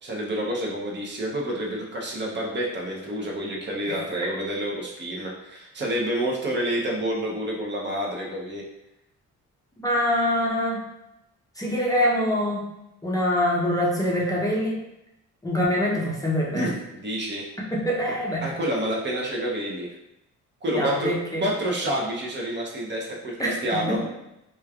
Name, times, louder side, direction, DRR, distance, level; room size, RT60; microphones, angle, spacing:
voice 1, 0.0-8.6 16.5-17.4 18.4-19.9 20.6-21.1 21.4-23.4 23.6-24.0, right 1 dB, 35° right, -1 dB, 0.6 m, -28 dB
voice 2, 9.8-10.8 11.6-12.6 13.0-14.8 15.4-16.7 17.7-18.5 20.7-21.4 23.4-24.0, equal, 10° left, -4 dB, 0.6 m, -24 dB
3.1 x 2.3 x 2.3 m, 0.88 s
cardioid pair, 90°, 30 cm